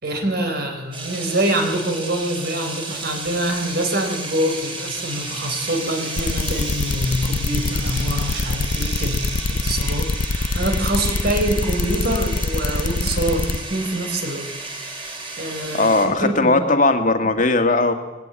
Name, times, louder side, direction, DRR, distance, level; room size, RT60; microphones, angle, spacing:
voice 1, 0.0-14.5 14.7-16.6, right 1 dB, 55° right, 5 dB, 3.9 m, -25 dB
sound 1, 0.9-16.1, right 2 dB, 25° right, 4.5 m, -33 dB
Squeak / Cupboard open or close, 4.9-9.7, right 1 dB, 5° right, 4.0 m, -37 dB
sound 2, 6.2-13.6, left 3 dB, 70° left, 0.7 m, -24 dB
voice 2, 15.7-17.9, left 2 dB, 40° left, 6 dB, 2.0 m, -18 dB
20.5 x 17.5 x 8.9 m, 1.1 s
head